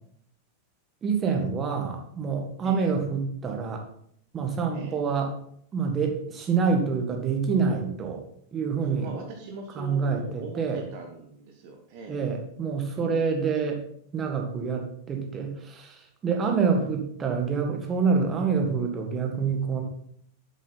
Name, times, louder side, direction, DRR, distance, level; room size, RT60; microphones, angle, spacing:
voice 1, 1.0-3.8 4.3-5.3 5.7-8.2 8.5-9.1 9.8-10.8 12.1-13.8 14.1-19.8, right 5 dB, 25° right, 3 dB, 1.7 m, -27 dB
voice 2, 8.8-12.2, right 3 dB, 45° right, 3 dB, 1.3 m, -41 dB
8.3 x 7.4 x 4.1 m, 0.66 s
figure-of-eight pair, 90°, 0 cm